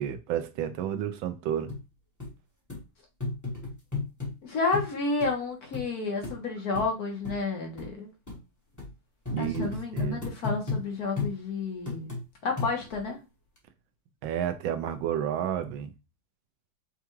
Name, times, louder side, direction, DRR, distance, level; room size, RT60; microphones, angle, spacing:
voice 1, 0.0-1.7 9.3-10.2 14.2-15.9, right 9 dB, 90° right, 1.4 m, -31 dB
sound 1, 1.7-1.8 2.2-2.3 2.7-2.8 3.2-4.3 4.7-4.9 5.2-5.3 5.7-5.8 6.2-6.4 6.7-6.9 7.2-7.4 7.8-7.9 8.3-8.4 8.8-8.9 9.2-10.8 11.2-11.3 11.9-12.2 12.6-13.0 13.6-13.7, left 3 dB, 10° left, 1.0 m, -33 dB
voice 2, 4.4-8.1 9.4-12.1 12.4-13.2, left 3 dB, 55° left, 1.5 m, -31 dB
5.5 x 2.3 x 3.1 m
omnidirectional pair, 2.1 m